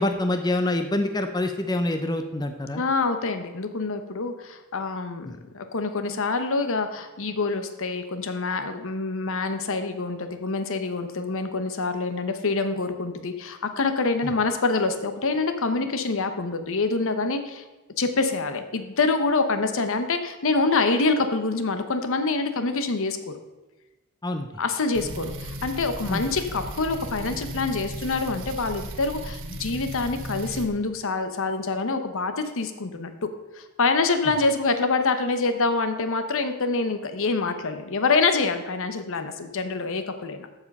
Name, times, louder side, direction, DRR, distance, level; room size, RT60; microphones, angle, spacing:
voice 1, 0.0-2.8 5.3-5.4 14.2-14.3 24.2-24.5 26.1-26.2, left 1 dB, 20° left, 6 dB, 0.6 m, -26 dB
voice 2, 2.7-17.6 18.0-23.3 24.6-33.1 33.5-40.5, left 3 dB, 65° left, 8 dB, 1.0 m, -26 dB
sound 1, 24.9-30.7, right 1 dB, 65° right, 1.2 m, -36 dB
14.0 x 5.0 x 5.4 m, 1.1 s
head